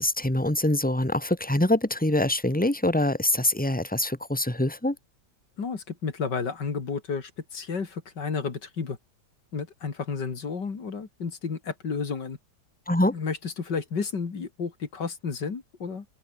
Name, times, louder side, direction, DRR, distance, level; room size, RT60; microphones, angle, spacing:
voice 1, 0.0-4.9 12.9-13.1, left 1 dB, 5° left, 3.0 m, -24 dB
voice 2, 5.6-9.0 9.5-12.4 13.1-16.1, left 5 dB, 85° left, 3.2 m, -32 dB
open air
omnidirectional pair, 1.8 m